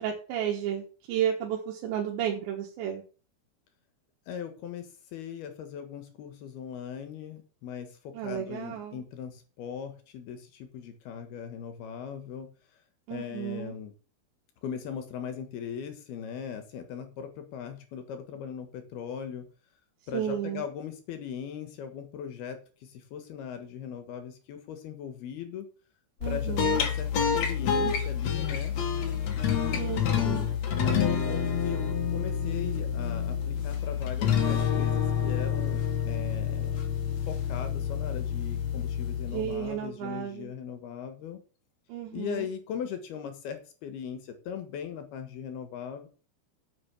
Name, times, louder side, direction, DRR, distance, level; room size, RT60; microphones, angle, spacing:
voice 1, 0.0-3.0 8.1-9.0 13.1-13.7 20.1-20.6 26.2-26.8 29.7-30.5 39.3-40.5 41.9-42.5, right 9 dB, 85° right, 0 dB, 3.7 m, -33 dB
voice 2, 4.3-12.5 13.1-13.9 14.6-19.5 20.1-25.7 26.3-28.7 29.3-36.8 37.3-41.4 42.1-46.1, left 8 dB, 70° left, 7 dB, 3.1 m, -39 dB
sound 1, 26.2-39.8, left 7 dB, 50° left, 2.3 m, -28 dB
8.8 x 6.8 x 7.1 m, 0.37 s
omnidirectional pair, 5.0 m